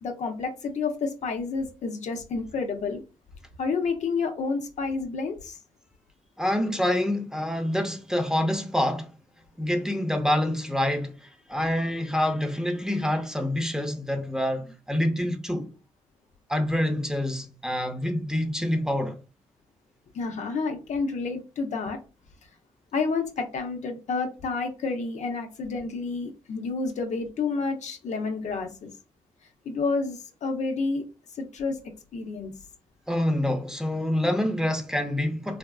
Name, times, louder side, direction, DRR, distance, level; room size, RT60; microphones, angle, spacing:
voice 1, 0.0-3.0 3.6-5.6 14.6-14.7 15.2-15.3 20.1-22.0 22.9-28.9 29.6-31.1 31.3-31.8 32.1-32.5, left 4 dB, 65° left, 0.7 m, -29 dB
voice 2, 6.4-9.1 9.6-15.7 16.5-19.2 33.1-35.6, left 1 dB, 5° right, 0.7 m, -26 dB
3.4 x 2.3 x 2.3 m
supercardioid pair, 55°, 13 cm